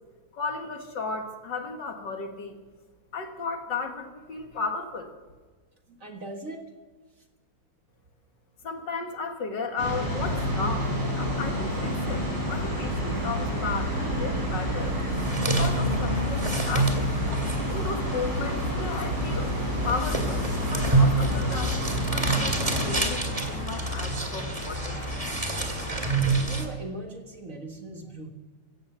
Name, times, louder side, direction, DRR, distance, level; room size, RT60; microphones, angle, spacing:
voice 1, 0.3-2.6 3.1-5.1 8.6-15.0 15.5-17.1 17.7-19.5 19.8-20.4 20.7-25.0, left 4 dB, 60° left, 4 dB, 2.3 m, -34 dB
voice 2, 5.9-6.7 26.5-28.3, right 2 dB, 40° right, 3 dB, 1.9 m, -39 dB
sound 1, 9.8-23.0, equal, 80° right, 7.1 m, -29 dB
sound 2, 10.6-26.6, equal, 75° left, 6.1 m, -40 dB
sound 3, 14.9-26.7, right 2 dB, 15° right, 2.0 m, -28 dB
16.5 x 15.0 x 5.6 m, 1.4 s
omnidirectional pair, 2.3 m